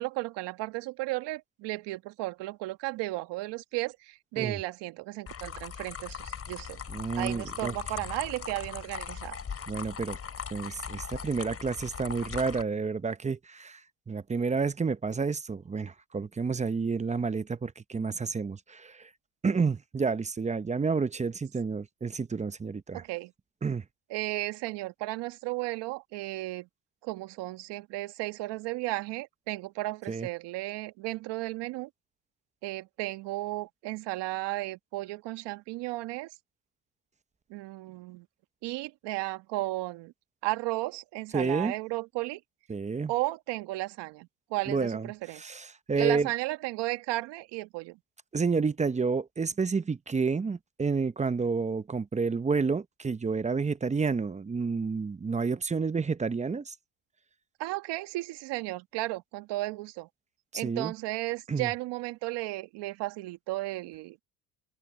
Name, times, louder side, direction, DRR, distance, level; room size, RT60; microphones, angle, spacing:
voice 1, 0.0-6.8 7.2-9.4 22.9-23.3 24.1-26.7 27.0-31.9 32.6-36.3 37.5-38.3 38.6-40.1 40.4-42.4 43.1-45.5 45.9-48.0 57.6-60.1 60.5-64.2, right 19 dB, 65° right, 1.7 m, -34 dB
sound 1, 5.3-12.6, left 6 dB, 30° left, 4.9 m, -39 dB
voice 2, 6.9-7.7 9.7-10.2 10.5-13.8 14.1-19.1 19.4-23.0 23.6-23.8 30.1-30.3 41.3-41.7 42.7-43.1 44.7-45.1 45.3-46.3 48.3-56.8 60.5-60.9 61.5-61.7, right 4 dB, 15° right, 0.8 m, -30 dB
open air
supercardioid pair, 95°, 44 cm